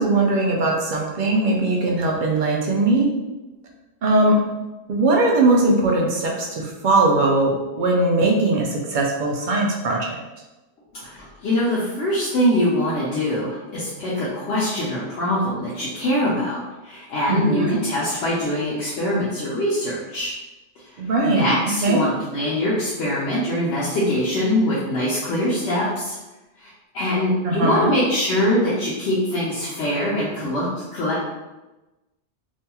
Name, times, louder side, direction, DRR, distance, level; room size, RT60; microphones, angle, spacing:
voice 1, 0.0-3.1 4.0-4.4 4.9-10.2 17.3-17.8 21.0-21.5 21.8-22.0 27.4-27.9, right 2 dB, 60° right, -1 dB, 0.5 m, -20 dB
voice 2, 10.9-20.3 21.2-26.2 26.6-31.2, left 1 dB, 75° left, -7 dB, 0.9 m, -23 dB
2.9 x 2.6 x 2.2 m, 1.1 s
omnidirectional pair, 1.2 m